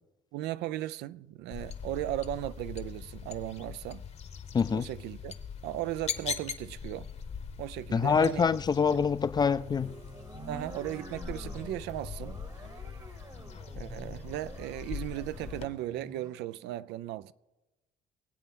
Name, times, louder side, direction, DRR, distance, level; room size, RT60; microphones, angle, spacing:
voice 1, 0.3-4.0 4.7-5.3 5.6-7.1 7.6-8.5 8.9-9.0 10.5-12.4 13.7-17.3, right 14 dB, 85° right, 0.5 m, -36 dB
sound 1, 1.5-15.7, left 6 dB, 40° left, 0.9 m, -42 dB
voice 2, 4.5-4.9 7.9-9.9, left 6 dB, 25° left, 0.4 m, -25 dB
sound 2, 9.6-16.4, right 2 dB, 25° right, 1.0 m, -48 dB
23.5 x 8.2 x 3.7 m
cardioid pair, 110°, 17 cm